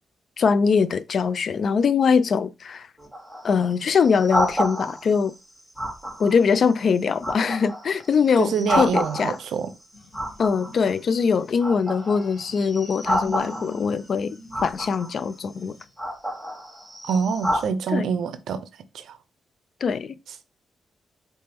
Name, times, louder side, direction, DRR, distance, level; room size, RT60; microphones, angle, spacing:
voice 1, 0.4-2.9 3.4-5.3 6.2-9.4 10.4-14.4 14.6-15.8 17.9-18.1 19.8-20.2, left 6 dB, 55° left, 0.3 m, -22 dB
sound 1, 3.0-5.2 5.8-6.5 6.9-9.6 10.1-11.2 11.6-13.9 14.5-15.2 15.8-17.7, equal, ahead, 1.4 m, -29 dB
voice 2, 8.4-9.7 17.0-18.6 18.9-19.2, right 6 dB, 85° right, 0.6 m, -26 dB
sound 2, 9.9-15.9, left 4 dB, 80° left, 1.6 m, -44 dB
4.2 x 3.5 x 2.9 m
cardioid pair, 110°, 0 cm